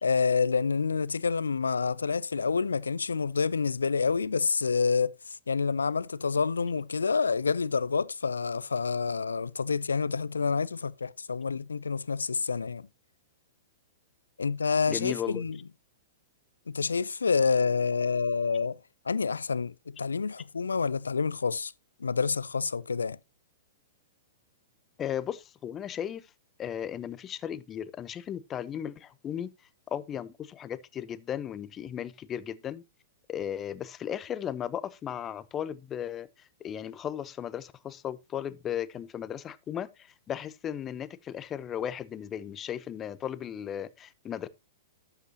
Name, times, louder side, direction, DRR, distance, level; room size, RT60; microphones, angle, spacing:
voice 1, 0.0-12.9 14.4-15.6 16.7-18.8 19.0-21.7 22.0-23.2, left 5 dB, 80° left, 0.5 m, -28 dB
voice 2, 14.9-15.4 25.0-26.3 26.6-29.5 29.9-32.8 33.3-44.5, left 9 dB, 25° left, 0.8 m, -36 dB
12.0 x 8.2 x 2.8 m
figure-of-eight pair, 110°, 0 cm